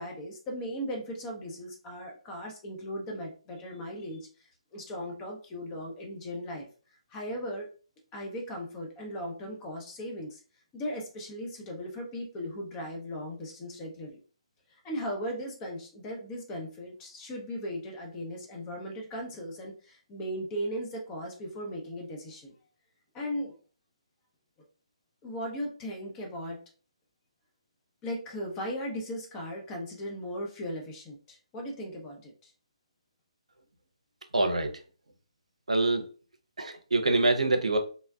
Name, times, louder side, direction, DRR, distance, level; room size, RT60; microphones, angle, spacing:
voice 1, 0.0-4.3 4.7-7.7 8.1-10.4 10.7-14.2 14.7-22.5 23.1-23.6 25.2-26.6 28.0-32.5, equal, 20° left, 0.7 m, -37 dB
voice 2, 34.3-34.7 35.7-36.1 36.6-37.8, right 2 dB, 80° right, 0.6 m, -25 dB
3.2 x 2.1 x 2.3 m
figure-of-eight pair, 140°, 3 cm